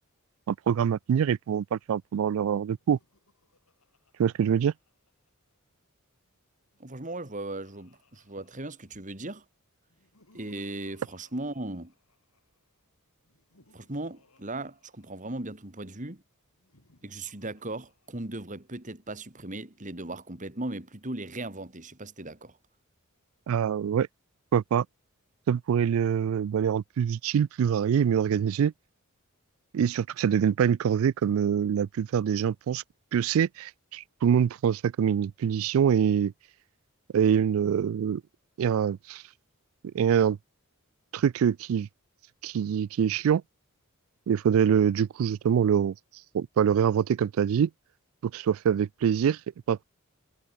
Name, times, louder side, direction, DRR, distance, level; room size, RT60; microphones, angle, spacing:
voice 1, 0.5-3.0 4.2-4.7 23.5-24.1 24.5-24.9 25.5-28.7 29.7-32.8 33.1-36.3 37.1-38.2 38.6-39.2 39.9-40.4 41.1-41.9 42.4-43.4 44.3-45.9 46.3-47.7 48.2-49.4 49.7-49.8, right 8 dB, 65° right, 0.3 m, -25 dB
Laughter, 2.8-5.5 6.6-9.2 9.9-12.6 13.2-15.7 16.5-18.6, left 2 dB, 80° left, 7.7 m, -64 dB
voice 2, 6.8-9.4 10.3-11.9 13.7-16.2 17.0-22.6, right 2 dB, 35° right, 2.5 m, -37 dB
head